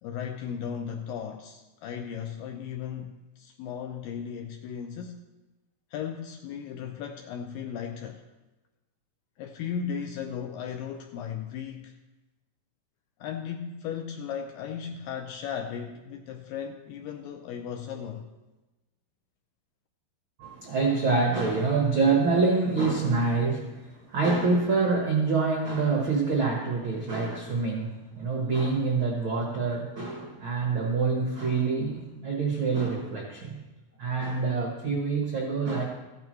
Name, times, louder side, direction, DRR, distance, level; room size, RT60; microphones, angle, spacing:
voice 1, 0.0-5.2 5.9-8.2 9.4-12.0 13.2-18.3, left 7 dB, 85° left, 4 dB, 1.9 m, -36 dB
voice 2, 20.4-33.6 34.0-35.8, right 4 dB, 90° right, -1 dB, 1.1 m, -26 dB
15.0 x 10.5 x 3.1 m, 1.1 s
omnidirectional pair, 4.6 m